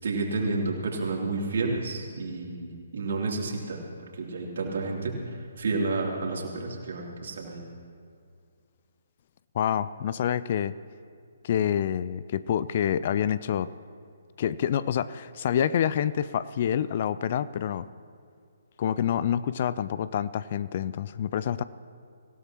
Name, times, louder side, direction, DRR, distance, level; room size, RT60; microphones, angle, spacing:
voice 1, 0.0-3.8 4.1-7.6, right 3 dB, 55° right, -1 dB, 3.1 m, -30 dB
voice 2, 9.5-10.7 11.4-13.7 14.4-17.9 18.8-21.6, left 9 dB, 40° left, 16 dB, 0.4 m, -27 dB
25.5 x 16.0 x 3.0 m, 2.3 s
figure-of-eight pair, 135°, 0 cm